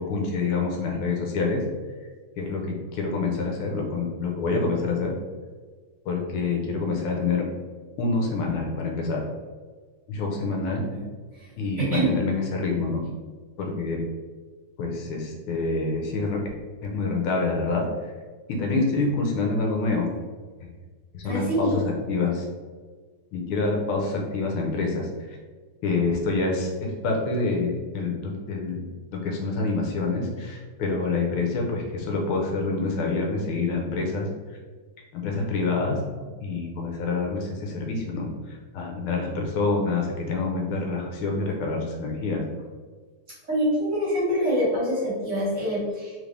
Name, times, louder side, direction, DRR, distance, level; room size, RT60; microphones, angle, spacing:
voice 1, 0.0-1.6 2.4-5.1 6.0-7.4 8.0-9.2 10.1-10.8 11.6-13.0 13.6-14.0 14.8-16.4 16.8-17.8 18.5-20.1 21.1-22.4 23.3-25.1 25.8-28.8 29.1-34.3 35.1-42.4, left 3 dB, 80° left, 0 dB, 1.6 m, -27 dB
voice 2, 11.8-12.1 21.2-21.8 43.5-46.1, equal, 35° right, -8 dB, 1.8 m, -25 dB
3.8 x 3.5 x 3.3 m, 1.4 s
omnidirectional pair, 2.4 m